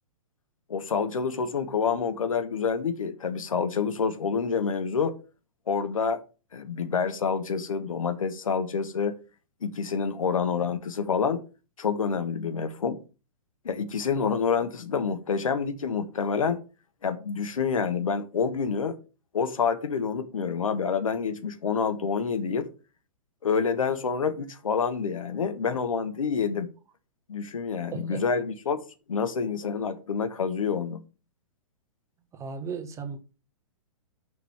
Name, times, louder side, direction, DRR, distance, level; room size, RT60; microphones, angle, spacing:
voice 1, 0.7-5.2 5.7-6.2 6.5-9.2 9.6-11.4 11.8-13.0 13.6-16.6 17.0-19.0 19.3-22.7 23.4-26.7 27.3-28.8 29.1-31.0, left 6 dB, 70° left, 1.3 m, -27 dB
voice 2, 27.9-28.2 32.3-33.2, right 5 dB, 15° right, 1.3 m, -35 dB
6.5 x 5.5 x 7.1 m
figure-of-eight pair, 115°, 18 cm